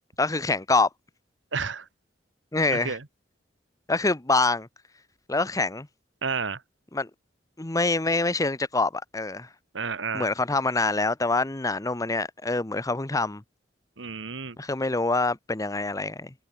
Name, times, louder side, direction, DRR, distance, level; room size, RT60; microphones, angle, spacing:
voice 1, 0.2-0.9 2.5-3.0 3.9-4.7 5.3-5.9 6.9-7.1 7.6-9.5 10.1-13.4 14.6-16.3, left 3 dB, 20° left, 0.9 m, -25 dB
voice 2, 1.5-1.9 2.7-3.0 6.2-6.6 9.7-10.3 14.0-14.6, right 5 dB, 80° right, 1.6 m, -31 dB
head